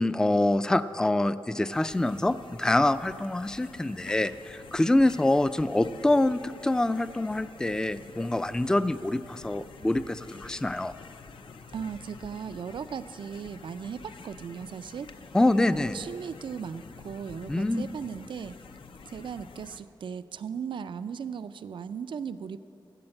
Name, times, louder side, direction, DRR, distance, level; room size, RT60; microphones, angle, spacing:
voice 1, 0.0-10.9 15.3-16.0 17.5-17.9, left 1 dB, 10° left, 13 dB, 0.3 m, -25 dB
sound 1, 1.7-19.8, left 5 dB, 85° left, 0.6 m, -49 dB
voice 2, 11.7-15.1 15.7-18.6 19.1-22.6, right 7 dB, 75° right, 12 dB, 0.4 m, -37 dB
13.0 x 7.9 x 7.7 m, 2.5 s
wide cardioid pair, 125°, 8 cm